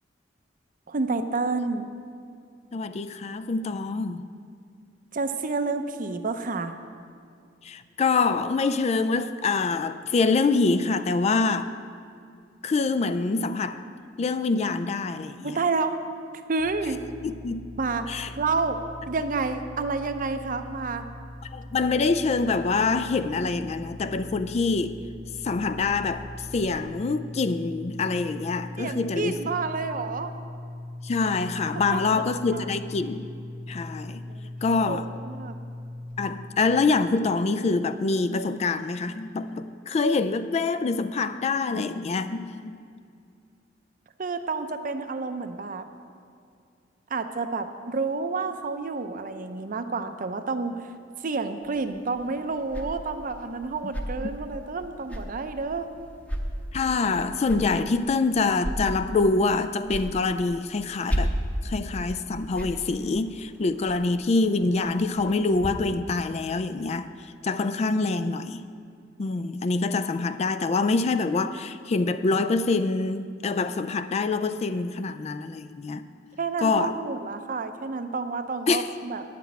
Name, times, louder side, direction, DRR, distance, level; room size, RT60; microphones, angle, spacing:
voice 1, 0.9-1.9 5.1-6.7 15.4-16.0 16.5-17.0 17.8-18.1 18.4-18.8 19.1-21.0 28.8-30.3 31.9-32.2 32.5-32.7 34.3-34.5 34.8-35.6 44.2-45.8 47.1-55.9 76.4-79.2, right 4 dB, 45° right, 8 dB, 0.6 m, -29 dB
voice 2, 2.7-4.3 7.6-11.7 12.6-13.8 14.2-15.6 17.2-17.7 18.1-18.3 21.5-25.0 25.4-26.3 26.5-29.3 31.0-33.3 33.7-34.2 34.6-35.1 36.2-42.8 56.7-61.3 61.6-67.1 67.4-68.6 69.2-76.0 76.6-76.9 78.7-78.8, left 3 dB, 35° left, 12 dB, 0.3 m, -25 dB
sound 1, 16.6-36.2, left 1 dB, 80° right, 1.4 m, -40 dB
sound 2, 51.6-65.7, equal, 10° left, 0.8 m, -35 dB
9.1 x 6.0 x 8.4 m, 2.3 s
head